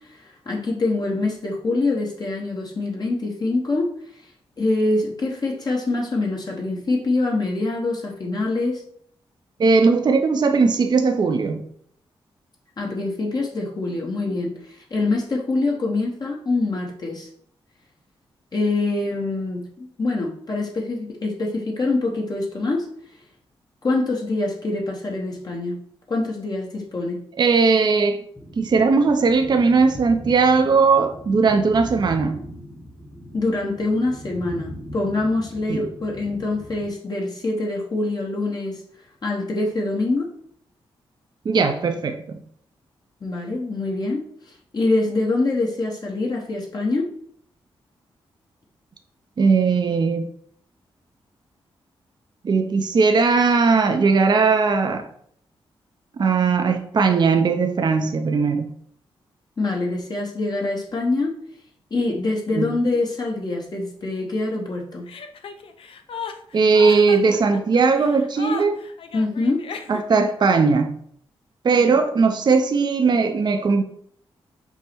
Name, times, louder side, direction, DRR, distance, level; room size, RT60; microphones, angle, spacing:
voice 1, 0.1-3.9 4.6-8.8 12.8-17.3 18.5-22.9 23.8-25.8 26.1-27.2 33.3-38.8 39.2-40.3 43.2-47.1 59.6-61.4 61.9-65.1 69.1-69.7, left 2 dB, 45° left, 0.9 m, -25 dB
voice 2, 9.6-11.6 27.4-28.2 28.6-32.4 35.7-35.8 41.4-42.4 49.4-50.3 52.4-55.1 56.2-58.7 62.5-62.7 66.5-68.8 69.9-70.9 71.6-73.8, right 4 dB, 45° right, 0.5 m, -18 dB
sound 1, 28.3-36.9, equal, 10° left, 1.0 m, -39 dB
Chuckle chortle, 65.1-70.3, left 6 dB, 65° left, 0.4 m, -35 dB
5.4 x 2.0 x 4.3 m
cardioid pair, 65°, 10 cm